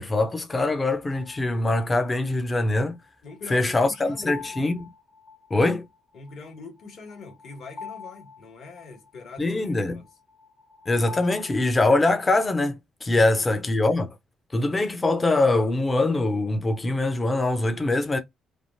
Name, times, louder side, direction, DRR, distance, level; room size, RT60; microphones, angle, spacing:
voice 1, 0.0-3.0 3.5-4.9 5.5-5.9 9.4-10.0 10.9-14.1 14.5-18.2, left 2 dB, 30° left, 0.7 m, -23 dB
sound 1, 1.1-12.4, left 5 dB, 45° left, 1.1 m, -46 dB
voice 2, 3.2-4.4 6.1-10.1 13.1-13.4, left 4 dB, 70° left, 1.5 m, -43 dB
3.4 x 2.0 x 2.5 m
supercardioid pair, 65°, 0 cm